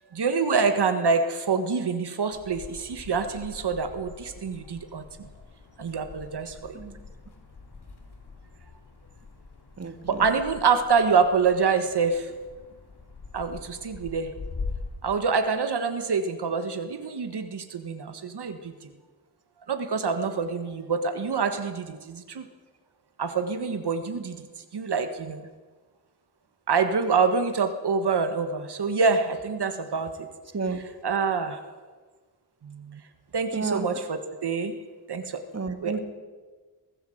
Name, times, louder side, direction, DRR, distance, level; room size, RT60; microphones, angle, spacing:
voice 1, 0.1-5.0 5.8-6.8 10.0-12.3 13.3-14.3 15.0-18.7 19.7-22.4 23.2-24.5 24.7-25.5 26.7-30.3 31.0-31.6 32.6-33.0 33.3-34.7 35.1-35.4 35.8-36.0, right 5 dB, 85° right, 8 dB, 1.6 m, -26 dB
sound 1, 2.3-15.0, left 4 dB, 80° left, 3.2 m, -43 dB
voice 2, 9.8-10.3 30.5-30.8 33.5-33.9 35.5-36.0, right 4 dB, 40° right, 7 dB, 2.2 m, -31 dB
23.0 x 15.0 x 7.9 m, 1.4 s
wide cardioid pair, 90°, 39 cm